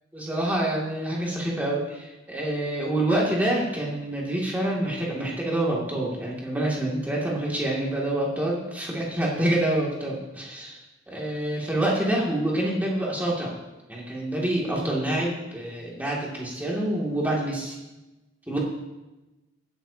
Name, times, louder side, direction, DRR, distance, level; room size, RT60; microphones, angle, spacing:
voice 1, 0.1-10.8 11.1-13.5 13.9-17.8 18.5-18.6, right 1 dB, 10° right, -4 dB, 2.3 m, -27 dB
15.5 x 9.2 x 2.8 m, 1.0 s
head